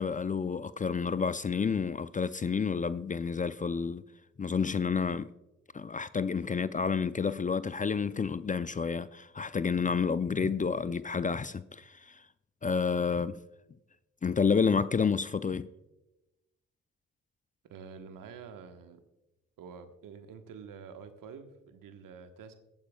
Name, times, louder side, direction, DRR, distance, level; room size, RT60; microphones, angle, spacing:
voice 1, 0.0-4.0 4.4-5.3 5.7-12.2 12.6-13.4 14.2-15.7, left 5 dB, 25° left, 0.5 m, -30 dB
voice 2, 17.6-19.0 19.6-22.5, right 6 dB, 70° right, 1.3 m, -48 dB
22.0 x 8.9 x 2.3 m
hypercardioid pair, 40°, 35 cm